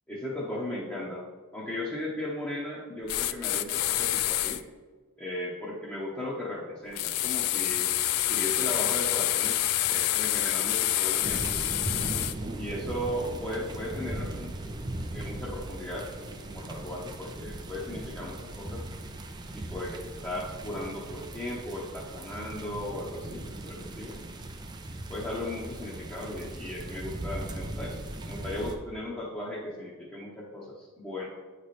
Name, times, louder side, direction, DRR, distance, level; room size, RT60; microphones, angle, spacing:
voice 1, 0.1-4.6 5.2-7.9 8.3-11.6 12.5-14.5 15.1-16.1 16.5-18.9 19.5-24.1 25.1-31.3, left 1 dB, 10° left, -7 dB, 0.8 m, -36 dB
sound 1, 3.1-4.6 7.0-12.3, left 14 dB, 90° left, 0.3 m, -27 dB
sound 2, 11.2-28.8, right 1 dB, 20° right, 0.4 m, -38 dB
8.9 x 3.2 x 4.1 m, 1.4 s
head